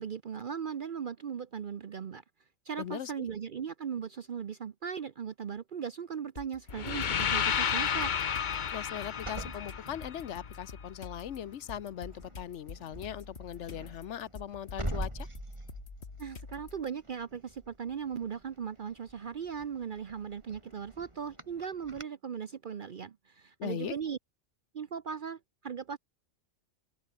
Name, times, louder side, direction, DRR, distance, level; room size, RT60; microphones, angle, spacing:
voice 1, 0.0-2.2 2.7-8.1 16.2-24.2 24.7-26.0, right 7 dB, 50° right, 0.8 m, -38 dB
voice 2, 2.8-3.3 8.7-15.3 23.6-23.9, left 10 dB, 90° left, 1.1 m, -39 dB
sound 1, 6.4-7.2 7.7-16.9, left 4 dB, 65° left, 2.2 m, -48 dB
sound 2, 6.7-10.8, left 7 dB, 45° left, 0.8 m, -32 dB
sound 3, 9.1-10.7 11.2-11.5 11.7-22.0, right 1 dB, 25° right, 3.7 m, -44 dB
omnidirectional pair, 1.2 m